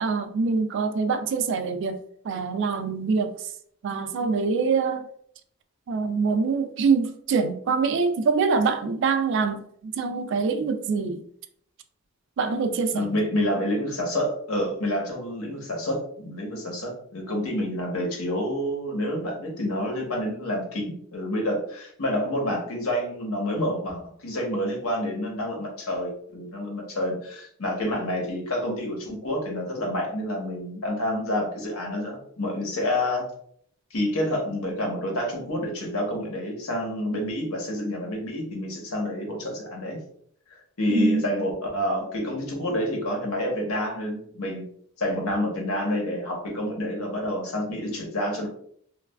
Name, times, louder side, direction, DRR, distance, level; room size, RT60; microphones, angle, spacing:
voice 1, 0.0-2.0 2.2-3.3 3.8-5.0 5.9-11.2 12.4-13.1 40.9-41.2, right 4 dB, 60° right, 8 dB, 0.3 m, -24 dB
voice 2, 12.9-33.3 33.9-40.0 40.5-44.7 45.0-48.5, left 1 dB, 90° left, 0 dB, 0.9 m, -28 dB
3.1 x 2.3 x 2.2 m, 0.64 s
head